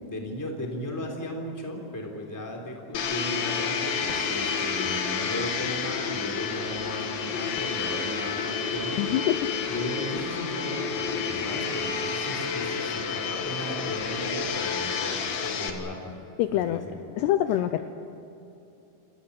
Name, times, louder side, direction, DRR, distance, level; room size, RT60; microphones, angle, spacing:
voice 1, 0.1-9.0 9.7-16.1 16.5-17.0, left 1 dB, 5° left, 2 dB, 2.6 m, -36 dB
Domestic sounds home sounds, 2.9-15.7, left 5 dB, 60° left, 3.2 m, -30 dB
voice 2, 9.0-9.4 16.4-16.8 17.2-17.8, left 12 dB, 80° left, 9 dB, 2.6 m, -24 dB
28.0 x 16.0 x 9.7 m, 2.8 s
omnidirectional pair, 5.3 m